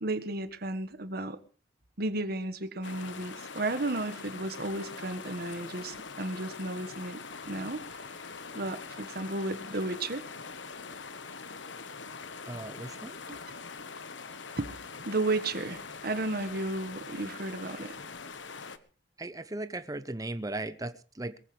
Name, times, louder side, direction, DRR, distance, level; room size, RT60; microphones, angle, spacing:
voice 1, 0.0-1.4 2.0-7.2 7.5-8.0 8.5-10.3 13.3-13.4 14.6-14.7 15.0-17.9, right 2 dB, 55° right, 1.5 m, -33 dB
sound 1, 2.8-18.8, left 5 dB, 80° left, 1.3 m, -43 dB
voice 2, 12.5-13.2 19.2-21.4, right 2 dB, 20° right, 0.8 m, -37 dB
22.5 x 15.0 x 3.3 m
head